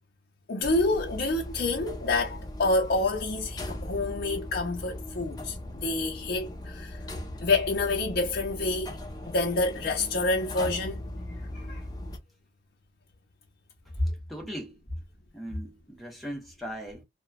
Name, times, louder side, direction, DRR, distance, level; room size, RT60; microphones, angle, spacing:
voice 1, 0.5-7.0 7.4-9.0 9.3-11.0 11.5-11.8, left 2 dB, 55° left, 0.6 m, -28 dB
sound 1, 0.6-12.2, left 1 dB, 20° left, 0.7 m, -39 dB
voice 2, 14.0-14.8 15.3-17.0, equal, ahead, 0.9 m, -35 dB
3.0 x 2.2 x 2.2 m
head